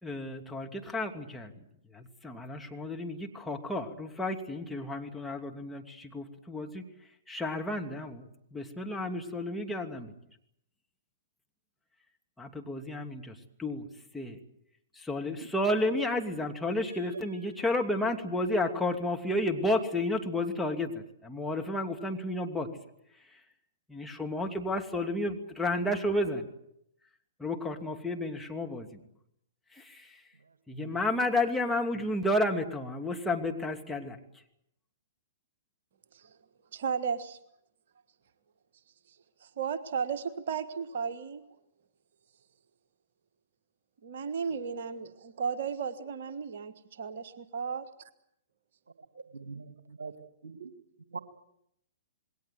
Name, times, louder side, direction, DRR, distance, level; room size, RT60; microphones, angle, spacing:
voice 1, 0.0-1.5 1.9-6.9 7.3-10.1 12.4-13.9 14.1-14.4 15.0-22.7 23.9-26.5 27.4-29.0 29.7-30.2 30.7-34.2, left 1 dB, 5° left, 2 dB, 2.6 m, -32 dB
voice 2, 30.5-30.9 49.3-50.1 50.4-50.7 51.1-51.2, right 4 dB, 70° right, 10 dB, 1.9 m, -43 dB
voice 3, 36.7-37.4 39.1-41.5 44.0-46.7 47.0-47.9, right 6 dB, 55° right, 10 dB, 1.5 m, -34 dB
27.5 x 21.0 x 7.7 m, 0.77 s
figure-of-eight pair, 110°, 0 cm